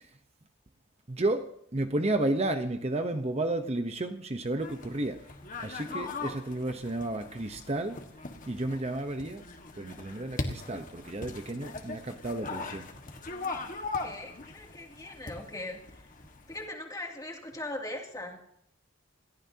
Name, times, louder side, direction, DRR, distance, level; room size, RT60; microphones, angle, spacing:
voice 1, 1.1-5.2 5.6-8.0 8.5-9.4 9.8-12.9, right 2 dB, 30° right, 0.9 m, -32 dB
sound 1, 4.6-16.7, left 3 dB, 40° left, 1.6 m, -40 dB
voice 2, 14.0-16.0 16.5-18.4, left 1 dB, 20° left, 2.6 m, -40 dB
27.5 x 14.5 x 2.9 m
head